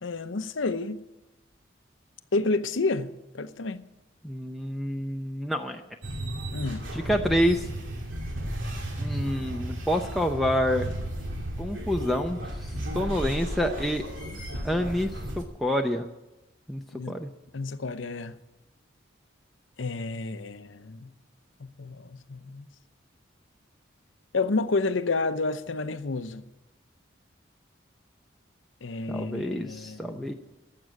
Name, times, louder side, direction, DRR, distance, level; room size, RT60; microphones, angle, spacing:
voice 1, 0.0-1.0 2.3-3.8 6.5-6.9 16.9-17.2 17.5-18.4 19.8-21.1 21.6-22.7 24.3-26.4 28.8-30.3, left 3 dB, 80° left, 0.8 m, -30 dB
voice 2, 4.2-5.8 6.9-7.7 9.0-10.9 11.6-14.0 14.6-16.1 16.7-17.3 29.1-30.3, equal, ahead, 0.6 m, -28 dB
sound 1, 6.0-15.4, right 1 dB, 80° right, 2.5 m, -34 dB
14.0 x 7.7 x 9.7 m
head